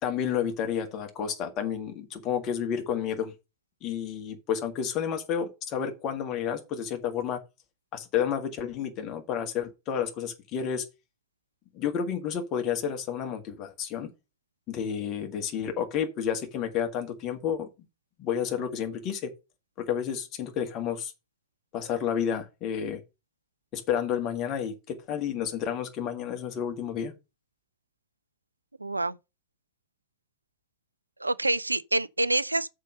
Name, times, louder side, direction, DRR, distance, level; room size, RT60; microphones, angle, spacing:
voice 1, 0.0-3.3 3.8-7.4 7.9-10.8 11.7-14.1 14.7-17.7 18.2-19.3 19.8-21.1 21.7-23.0 23.7-27.1, left 8 dB, 35° left, 1.7 m, -30 dB
voice 2, 28.8-29.2 31.2-32.7, right 2 dB, 85° right, 0.4 m, -27 dB
6.5 x 5.1 x 6.6 m
figure-of-eight pair, 90°, 0 cm